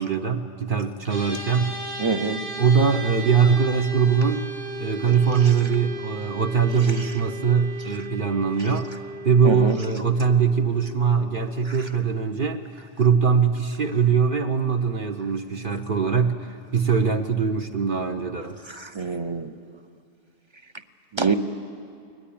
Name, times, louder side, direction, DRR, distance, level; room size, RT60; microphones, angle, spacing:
voice 1, 0.0-1.8 2.6-4.4 4.8-8.9 9.2-12.6 13.0-18.6, right 6 dB, 50° right, 5 dB, 0.9 m, -22 dB
sound 1, 1.1-12.5, right 1 dB, 85° right, 7.8 m, -36 dB
voice 2, 2.0-2.4 9.4-9.8 18.8-19.5 21.1-21.3, right 4 dB, 30° right, 9 dB, 0.5 m, -25 dB
21.5 x 20.0 x 8.7 m, 2.4 s
omnidirectional pair, 1.3 m